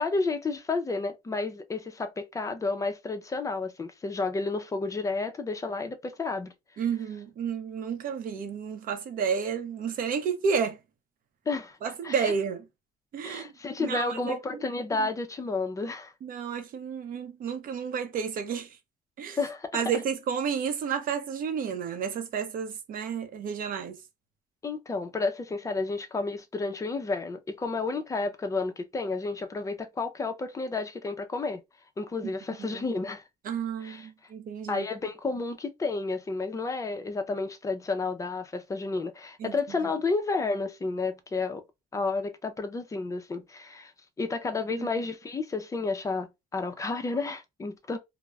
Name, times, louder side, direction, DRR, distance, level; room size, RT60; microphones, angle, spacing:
voice 1, 0.0-6.5 11.5-11.8 12.0-12.3 13.2-16.1 19.4-19.8 24.6-31.6 32.0-33.2 33.8-34.1 34.7-41.6 41.9-43.9 44.2-48.0, left 3 dB, 20° left, 0.4 m, -31 dB
voice 2, 6.8-10.8 11.8-12.6 13.1-13.5 13.8-14.4 15.0-15.1 16.2-18.8 19.2-19.4 19.7-24.0 32.6-32.8 33.4-34.9 39.4-39.5 39.8-39.9 44.7-44.9, right 6 dB, 55° right, 0.6 m, -31 dB
2.3 x 2.0 x 3.2 m
cardioid pair, 110°, 17 cm